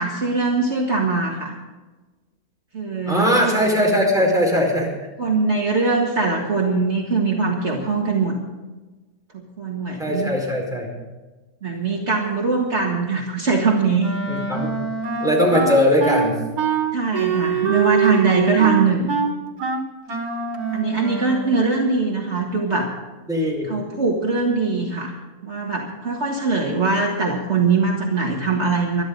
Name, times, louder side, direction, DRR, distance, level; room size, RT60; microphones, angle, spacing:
voice 1, 0.0-1.5 2.7-3.3 5.2-8.4 9.3-10.4 11.6-14.1 16.9-19.1 20.7-22.9 23.7-29.0, right 4 dB, 50° right, -1 dB, 2.0 m, -21 dB
voice 2, 3.1-4.9 10.0-10.9 14.3-14.8 15.2-16.4 23.3-23.7, equal, ahead, -2 dB, 4.8 m, -19 dB
Wind instrument woodwind instrument, 14.0-21.6, right 6 dB, 85° right, 2.2 m, -24 dB
22.0 x 12.5 x 3.9 m, 1.2 s
omnidirectional pair, 1.6 m